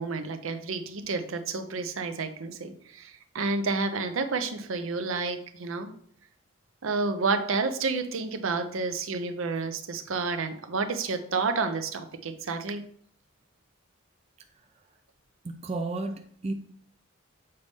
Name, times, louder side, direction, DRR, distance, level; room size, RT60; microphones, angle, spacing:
voice 1, 0.0-5.9 6.8-12.8, right 4 dB, 70° right, 8 dB, 0.6 m, -30 dB
voice 2, 15.4-16.5, right 2 dB, 30° right, 5 dB, 0.4 m, -32 dB
6.6 x 4.1 x 3.5 m, 0.63 s
head